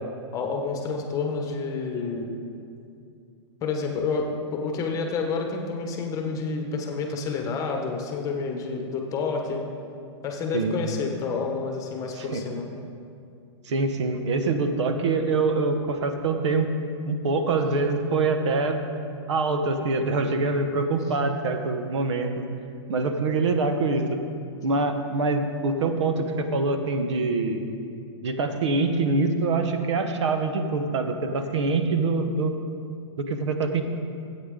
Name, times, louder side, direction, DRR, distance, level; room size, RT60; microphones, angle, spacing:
voice 1, 0.3-2.3 3.6-9.6 10.2-12.6, left 4 dB, 20° left, 3 dB, 1.1 m, -29 dB
voice 2, 13.7-16.7 17.0-18.8 19.3-22.4 22.9-24.2 24.6-27.6 28.2-32.5 33.3-33.8, right 3 dB, 75° right, 7 dB, 1.1 m, -24 dB
14.0 x 8.6 x 3.8 m, 2.4 s
hypercardioid pair, 145°, 15 cm